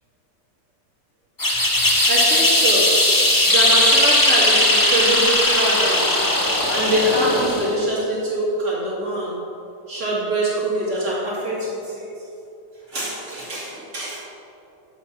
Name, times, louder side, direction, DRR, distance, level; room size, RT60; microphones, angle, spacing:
sound 1, 1.4-7.8, left 1 dB, 20° left, 0.5 m, -18 dB
voice 1, 2.1-3.1 3.4-6.2 6.7-9.4 9.9-12.1 12.9-14.2, right 1 dB, 40° right, -5 dB, 2.2 m, -24 dB
7.4 x 5.9 x 7.2 m, 2.8 s
omnidirectional pair, 2.1 m